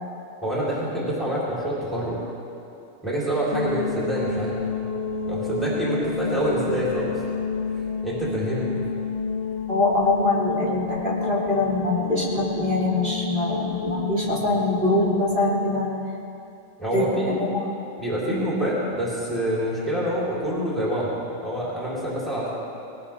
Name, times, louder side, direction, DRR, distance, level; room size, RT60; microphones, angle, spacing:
voice 1, 0.4-2.2 3.0-4.6 5.3-7.2 8.0-8.7 16.8-17.4 18.0-22.5, right 1 dB, ahead, -8 dB, 4.3 m, -26 dB
sound 1, 3.5-15.9, left 4 dB, 50° left, 1.8 m, -30 dB
voice 2, 9.7-15.9 16.9-17.7 18.3-18.5, left 2 dB, 40° right, -6 dB, 3.1 m, -24 dB
21.5 x 18.5 x 3.7 m, 2.7 s
omnidirectional pair, 1.4 m